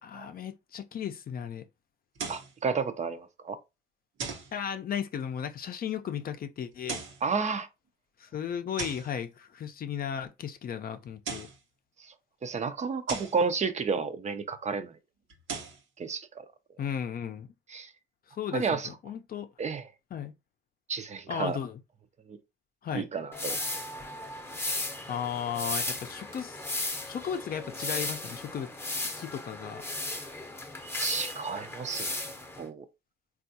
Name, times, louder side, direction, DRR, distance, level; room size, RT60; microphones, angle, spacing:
voice 1, 0.0-1.6 4.5-7.0 8.2-11.5 16.8-17.5 18.3-19.5 20.1-20.3 21.3-21.8 22.8-23.1 25.1-26.6 27.1-28.7 29.2-29.8, left 8 dB, 50° left, 0.5 m, -35 dB
sound 1, 2.2-2.5 4.2-4.5 6.7-7.2 8.8-9.1 11.1-11.6 13.1-13.4 15.3-15.8, right 5 dB, 80° right, 0.9 m, -37 dB
voice 2, 2.3-3.6 7.2-7.7 12.0-12.1 12.4-14.9 16.0-16.4 17.7-17.9 18.5-18.9 19.6-19.9 20.9-21.6 22.3-22.4 22.9-23.6 31.0-32.2 32.6-32.9, right 5 dB, 35° right, 0.5 m, -31 dB
sound 2, 23.3-32.7, left 2 dB, 10° left, 0.7 m, -36 dB
3.4 x 2.3 x 2.7 m
cardioid pair, 90°, 20 cm